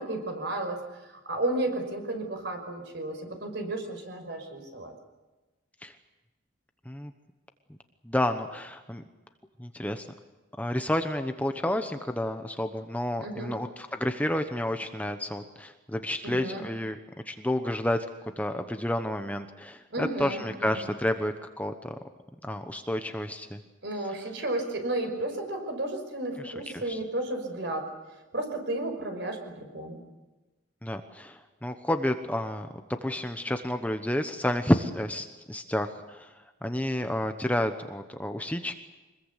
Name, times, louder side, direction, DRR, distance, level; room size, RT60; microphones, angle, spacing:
voice 1, 0.0-4.9 13.2-13.5 16.2-16.6 19.9-20.9 23.8-27.9 28.3-30.0, right 1 dB, 60° right, 5 dB, 5.6 m, -33 dB
voice 2, 8.1-9.0 9.6-10.1 10.6-17.0 17.3-18.0 18.4-21.9 22.4-23.6 26.4-27.0 30.8-32.7 33.0-36.3 36.6-38.7, left 1 dB, 5° left, 7 dB, 1.0 m, -30 dB
25.5 x 21.0 x 8.4 m, 1.1 s
head